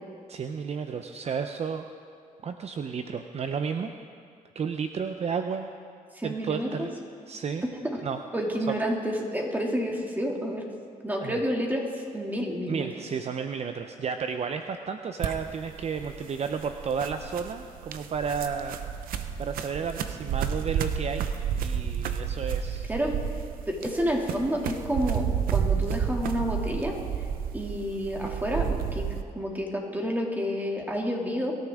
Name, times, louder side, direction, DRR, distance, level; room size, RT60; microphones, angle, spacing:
voice 1, 0.3-1.8 2.4-3.9 4.5-5.7 6.2-6.9 7.3-7.6 8.0-8.2 8.7-8.8 11.2-11.4 12.7-18.8 19.4-22.9, right 6 dB, 50° right, 7 dB, 0.6 m, -32 dB
voice 2, 6.1-6.9 7.9-8.0 8.3-10.6 11.0-12.9 22.9-23.2 23.7-27.0 27.5-31.5, equal, 10° right, -1 dB, 2.5 m, -29 dB
sound 1, 15.2-29.2, right 8 dB, 85° right, 0.7 m, -31 dB
22.5 x 13.0 x 3.6 m, 2.2 s
cardioid pair, 80°, 14 cm